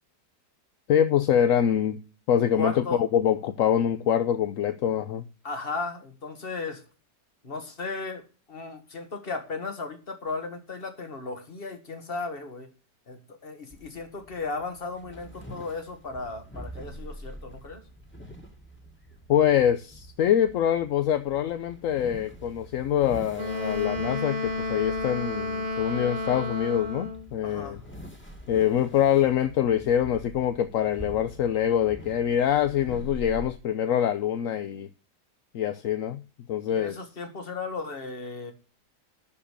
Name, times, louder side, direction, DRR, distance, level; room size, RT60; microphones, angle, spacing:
voice 1, 0.9-2.0 2.3-5.2 19.3-27.8 28.5-34.9 35.5-36.2 36.5-37.0, left 9 dB, 65° left, 11 dB, 0.9 m, -24 dB
voice 2, 2.6-3.0 5.4-6.8 7.4-12.7 13.1-17.8 27.4-27.8 36.7-38.5, left 3 dB, 35° left, 7 dB, 1.8 m, -35 dB
sound 1, 13.7-33.5, right 1 dB, 5° left, 2.0 m, -45 dB
Wind instrument woodwind instrument, 23.3-27.3, left 2 dB, 30° right, 1.3 m, -31 dB
12.0 x 5.1 x 6.7 m, 0.36 s
omnidirectional pair, 1.8 m